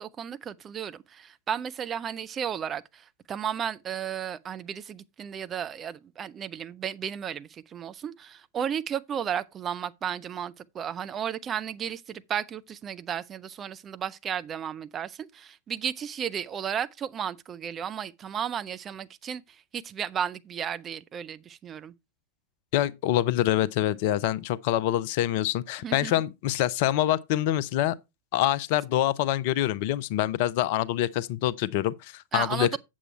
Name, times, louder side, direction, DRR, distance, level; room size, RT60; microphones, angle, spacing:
voice 1, 0.0-21.9 25.8-26.1 32.3-32.8, right 8 dB, 25° right, 0.6 m, -34 dB
voice 2, 22.7-28.0 28.3-32.8, left 13 dB, 50° left, 0.6 m, -25 dB
8.1 x 7.4 x 4.4 m
figure-of-eight pair, 90°, 0 cm